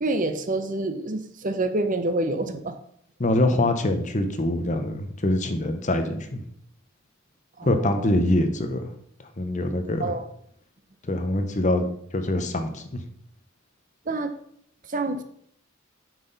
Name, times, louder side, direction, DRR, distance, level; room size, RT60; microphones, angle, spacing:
voice 1, 0.0-2.8 7.6-8.1 10.0-10.3 14.1-14.3 14.8-15.2, right 2 dB, 40° right, 9 dB, 0.7 m, -27 dB
voice 2, 3.2-6.4 7.6-8.9 9.4-10.1 11.0-11.8 12.1-13.0, left 1 dB, 35° left, 7 dB, 0.9 m, -24 dB
9.1 x 5.9 x 4.0 m, 0.67 s
head